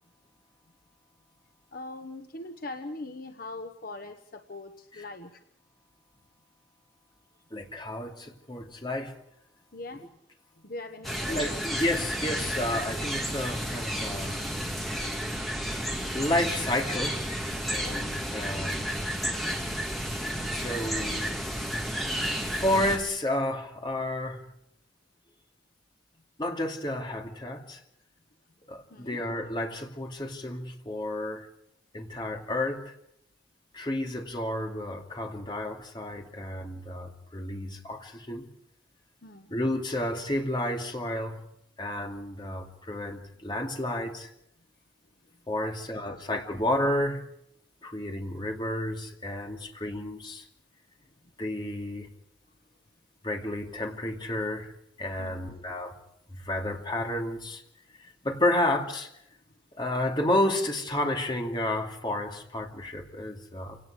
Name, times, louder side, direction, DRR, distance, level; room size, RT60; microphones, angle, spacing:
voice 1, 1.7-5.4 9.7-10.1 10.6-11.7 17.8-18.1 28.9-29.2 39.2-39.5 45.6-45.8 46.0-46.2 55.2-55.5, left 2 dB, 50° left, 6 dB, 1.2 m, -41 dB
voice 2, 7.5-9.1 11.3-14.4 16.1-17.2 17.7-18.7 20.5-21.4 22.4-24.5 26.4-27.8 28.7-31.5 31.9-32.9 33.7-38.5 39.5-41.4 41.8-44.3 45.5-47.3 47.8-50.4 51.4-52.1 53.2-54.7 55.0-56.0 56.3-57.6 58.0-59.1 59.8-63.8, left 1 dB, 25° left, 2 dB, 2.5 m, -31 dB
sound 1, 11.0-23.0, equal, ahead, 2.4 m, -32 dB
28.5 x 18.0 x 5.0 m, 0.76 s
head